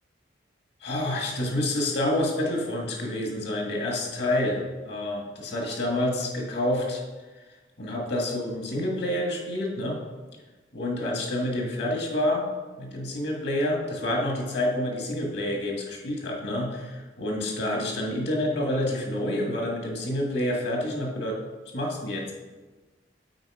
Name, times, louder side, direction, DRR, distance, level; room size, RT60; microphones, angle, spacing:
voice 1, 0.8-7.0 7.8-10.0 10.7-12.5 12.8-21.4 21.7-22.3, left 1 dB, 65° left, 0 dB, 1.8 m, -28 dB
7.9 x 4.8 x 4.8 m, 1.3 s
head